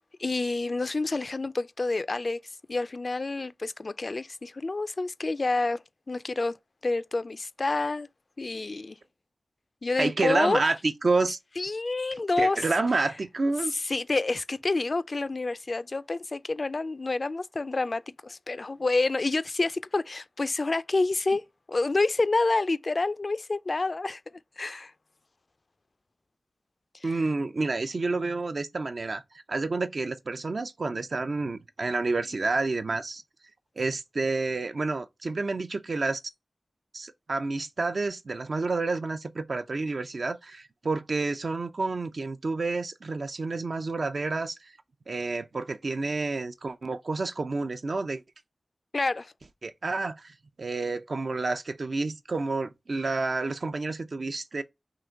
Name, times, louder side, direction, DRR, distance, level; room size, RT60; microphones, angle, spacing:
voice 1, 0.2-2.4 2.7-5.8 6.1-6.5 6.8-8.1 8.4-9.0 9.8-10.6 11.6-12.7 13.8-21.4 21.7-24.2 24.6-24.9 27.0-27.1 48.9-49.3, left 3 dB, 55° left, 0.3 m, -28 dB
voice 2, 10.0-11.4 12.4-13.8 27.0-29.2 29.5-33.2 33.8-36.2 36.9-44.7 45.1-48.2 49.6-54.6, right 3 dB, 70° right, 0.5 m, -29 dB
3.8 x 2.9 x 4.5 m
cardioid pair, 45°, 0 cm